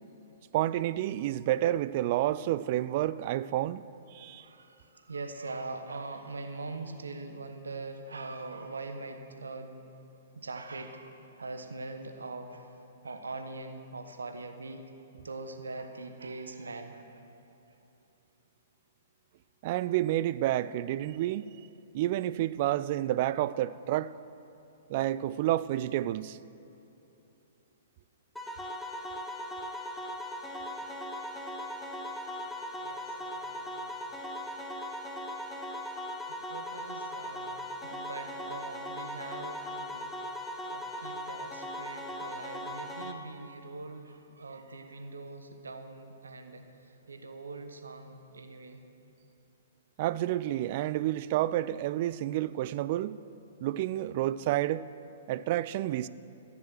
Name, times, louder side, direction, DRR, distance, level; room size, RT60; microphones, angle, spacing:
voice 1, 0.5-3.8 4.1-4.4 19.6-21.5 21.9-24.1 24.9-26.4 50.0-53.2 53.6-54.9 55.3-56.1, right 14 dB, 40° right, 0.3 m, -29 dB
voice 2, 4.4-9.8 10.3-12.8 13.0-14.8 15.1-17.2 32.8-33.9 36.5-40.1 40.7-46.6 47.1-48.8, right 3 dB, 70° right, 1.1 m, -42 dB
sound 1, 28.4-43.1, left 1 dB, 5° left, 1.1 m, -39 dB
14.0 x 9.6 x 6.4 m
figure-of-eight pair, 115°, 0 cm